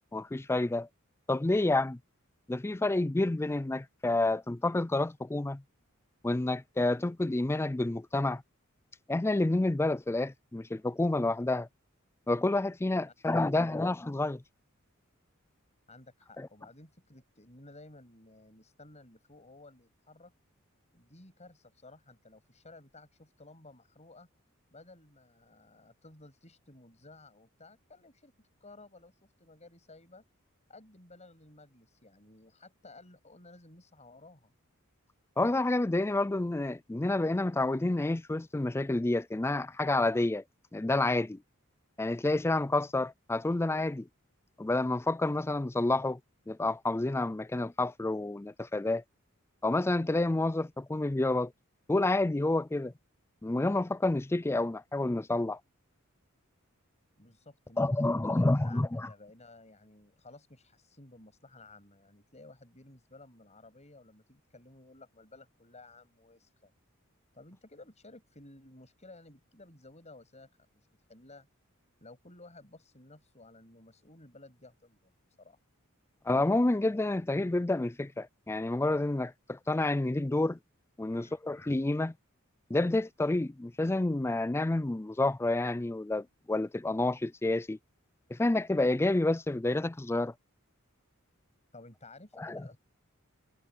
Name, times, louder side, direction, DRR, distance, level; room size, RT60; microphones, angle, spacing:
voice 1, 0.1-0.9 1.3-2.0 2.5-5.6 6.2-8.4 9.1-11.7 12.3-14.4 16.4-16.5 35.4-40.4 40.7-41.4 42.0-44.1 44.6-46.2 46.5-49.0 49.6-51.5 51.9-52.9 53.4-55.6 57.8-59.1 76.3-80.6 81.0-82.1 82.7-87.8 88.3-90.3 92.4-92.6, left 2 dB, 10° left, 0.4 m, -29 dB
voice 2, 15.9-20.3 20.9-24.3 24.7-30.2 30.7-34.5 57.2-58.2 58.6-58.8 59.1-66.7 67.3-71.5 72.0-75.6 81.1-81.4 91.7-92.8, left 2 dB, 30° left, 7.8 m, -55 dB
head